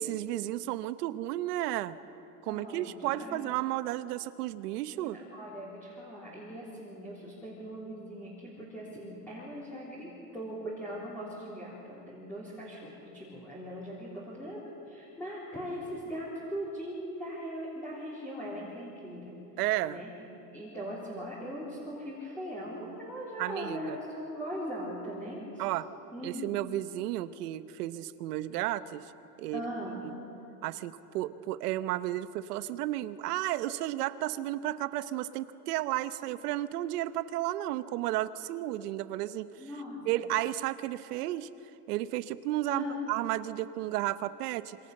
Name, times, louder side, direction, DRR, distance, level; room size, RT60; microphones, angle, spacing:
voice 1, 0.0-2.0 2.4-5.2 19.6-20.0 23.4-24.0 25.6-25.9 26.2-29.0 29.4-30.1 30.6-39.5 40.0-41.5 41.9-44.8, right 14 dB, 75° right, 13 dB, 1.1 m, -33 dB
voice 2, 2.5-3.4 4.9-19.4 19.8-20.1 20.5-25.6 26.1-26.4 29.5-30.1 39.6-40.2 42.7-43.0, equal, 5° left, -8 dB, 3.8 m, -40 dB
26.5 x 26.0 x 6.7 m, 3.0 s
supercardioid pair, 175°, 47 cm